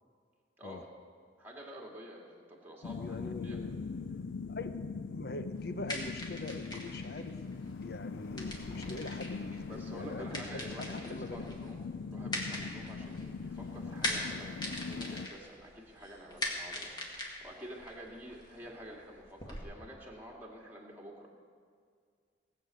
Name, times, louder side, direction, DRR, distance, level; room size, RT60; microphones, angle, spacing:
voice 1, 0.6-0.9 1.4-3.2 3.4-3.6 9.7-11.8 12.1-16.9 17.4-21.3, equal, 10° right, -2 dB, 2.1 m, -49 dB
sound 1, 2.8-15.3, left 4 dB, 85° left, 0.4 m, -41 dB
voice 2, 2.9-3.8 4.5-4.7 5.1-7.4 7.8-11.4 12.6-12.7, left 2 dB, 55° left, 9 dB, 0.8 m, -43 dB
sound 2, 5.5-19.6, left 1 dB, 25° left, 1.9 m, -42 dB
19.0 x 6.7 x 8.1 m, 2.1 s
head